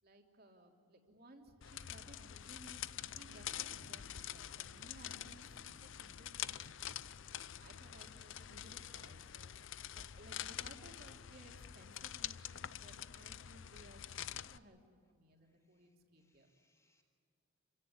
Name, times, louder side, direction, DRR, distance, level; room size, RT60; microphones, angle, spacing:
voice 1, 0.0-16.5, right 1 dB, 45° right, 2 dB, 3.2 m, -61 dB
sound 1, 1.6-14.6, left 11 dB, 60° left, 0.6 m, -46 dB
sound 2, 2.9-7.8, equal, 60° right, 4.6 m, -65 dB
voice 2, 15.4-17.0, left 2 dB, 15° left, 3 dB, 4.0 m, -80 dB
29.5 x 17.0 x 9.8 m, 2.3 s
head